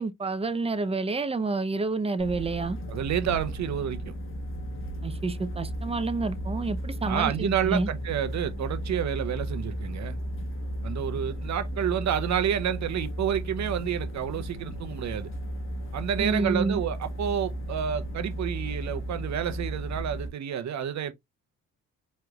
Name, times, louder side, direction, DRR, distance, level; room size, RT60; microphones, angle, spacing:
voice 1, 0.0-2.8 5.0-7.9 16.2-16.8, right 3 dB, 20° right, 0.7 m, -29 dB
sound 1, 2.2-20.3, equal, 40° left, 1.3 m, -34 dB
voice 2, 2.9-4.1 7.0-10.2 10.8-15.3 15.9-21.1, right 9 dB, 60° right, 0.9 m, -29 dB
4.8 x 3.2 x 2.4 m
supercardioid pair, 70°, 32 cm